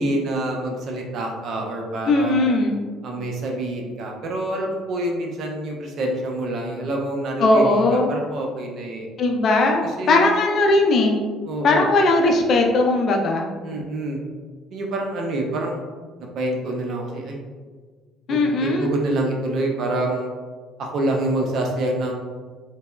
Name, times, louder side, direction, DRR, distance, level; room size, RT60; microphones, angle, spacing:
voice 1, 0.0-2.5 3.0-9.1 9.8-10.4 11.4-11.9 13.6-14.2 14.7-15.8 16.2-17.4 18.3-20.3 20.8-22.1, right 1 dB, 55° right, 1 dB, 0.5 m, -26 dB
voice 2, 2.1-2.8 7.4-8.1 9.2-11.2 11.6-13.5 18.3-18.9, left 2 dB, 50° left, 1 dB, 0.4 m, -18 dB
4.2 x 2.0 x 2.2 m, 1.5 s
figure-of-eight pair, 55°, 0 cm